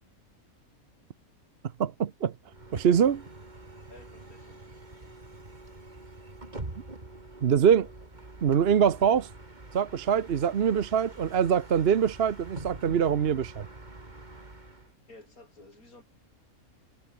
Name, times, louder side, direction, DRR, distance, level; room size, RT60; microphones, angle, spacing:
voice 1, 1.8-2.3 2.7-3.2 7.4-7.9 8.4-9.3 9.7-13.7, right 8 dB, 50° right, 1.0 m, -24 dB
Bus, 2.5-14.9, right 2 dB, 30° right, 3.1 m, -45 dB
voice 2, 3.9-4.6 15.1-16.0, left 2 dB, 75° left, 5.9 m, -53 dB
omnidirectional pair, 1.5 m